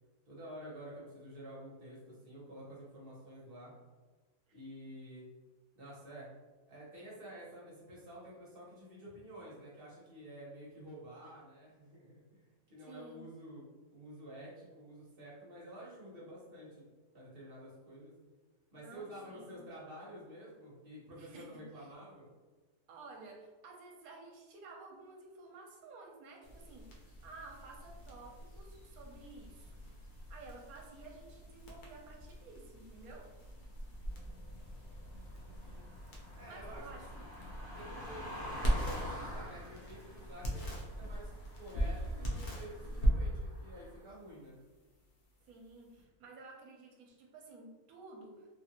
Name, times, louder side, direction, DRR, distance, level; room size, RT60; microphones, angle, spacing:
voice 1, 0.3-3.7 4.5-5.3 5.7-6.3 6.7-13.6 13.9-16.9 17.1-18.1 18.7-22.3 35.2-35.8 36.4-36.8 37.7-40.7 41.0-41.3 41.6-44.6, right 1 dB, 45° right, -6 dB, 1.0 m, -50 dB
voice 2, 12.8-13.2 18.8-19.6 21.2-21.9 22.9-29.8 30.3-33.3 36.5-37.1 41.7-42.5 45.5-48.5, right 3 dB, 70° right, 0 dB, 1.1 m, -53 dB
sound 1, 26.4-46.0, equal, 85° left, 0.4 m, -40 dB
sound 2, 27.0-28.1 28.5-30.6 32.0-32.7 33.9-44.0, left 1 dB, 15° right, 1.5 m, -49 dB
2.9 x 2.4 x 2.8 m, 1.3 s
omnidirectional pair, 1.6 m